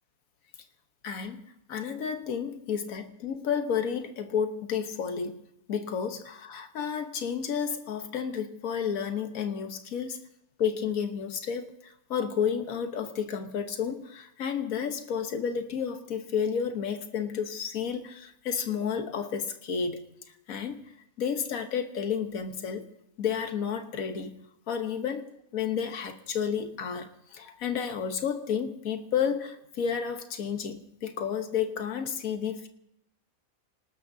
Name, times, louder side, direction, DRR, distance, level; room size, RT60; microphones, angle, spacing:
voice 1, 1.0-5.4 5.7-10.2 10.6-20.0 20.5-20.8 21.2-22.9 23.2-32.7, left 7 dB, 70° left, 7 dB, 1.5 m, -31 dB
26.5 x 19.0 x 2.7 m, 0.82 s
omnidirectional pair, 1.5 m